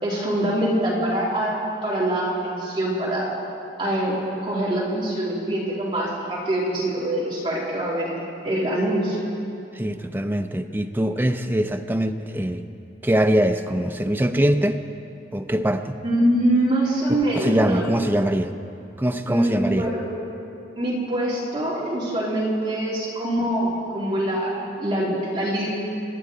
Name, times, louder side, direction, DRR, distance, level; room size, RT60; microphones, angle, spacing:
voice 1, 0.0-1.5 1.8-3.3 3.8-8.2 8.4-9.3 16.0-18.0 19.3-20.0 20.8-25.7, right 1 dB, 30° right, -6 dB, 3.2 m, -24 dB
voice 2, 9.7-12.7 13.0-14.8 15.3-15.9 17.1-18.5 19.0-19.9, right 1 dB, 10° right, 6 dB, 0.5 m, -23 dB
27.0 x 11.0 x 3.9 m, 2.8 s
head